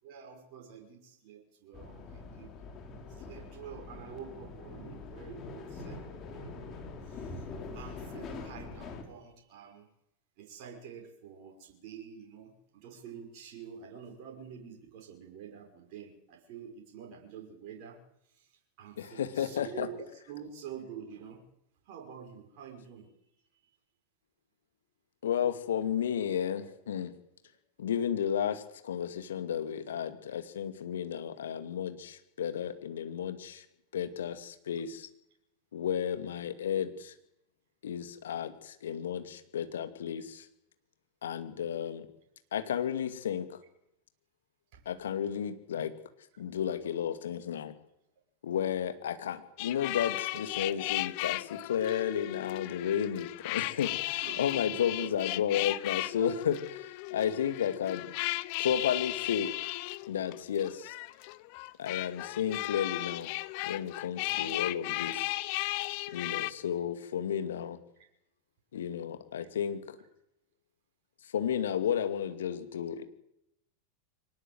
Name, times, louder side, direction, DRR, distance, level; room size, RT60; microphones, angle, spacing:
voice 1, 0.0-2.5 3.1-7.5 7.7-9.9 10.4-18.0 18.3-18.5 18.8-21.4 21.9-23.1 26.3-27.0 44.7-44.8 50.6-50.7 54.0-55.1 56.2-56.3 64.2-64.6, right 7 dB, 50° right, 1 dB, 5.9 m, -48 dB
sound 1, 1.7-9.0, left 3 dB, 35° left, 5.2 m, -44 dB
voice 2, 19.0-19.9 25.2-27.1 27.8-33.6 33.9-35.1 35.7-37.1 37.8-40.5 41.2-42.1 42.5-43.6 44.9-45.9 46.4-47.7 48.4-58.1 58.6-59.5 60.1-60.9 61.8-63.3 63.6-65.3 66.1-67.8 68.7-70.0 71.3-73.0, left 9 dB, 70° left, 9 dB, 2.3 m, -33 dB
sound 2, 49.6-66.5, left 21 dB, 50° left, 0.9 m, -36 dB
24.0 x 19.0 x 8.0 m, 0.78 s
figure-of-eight pair, 90°, 0 cm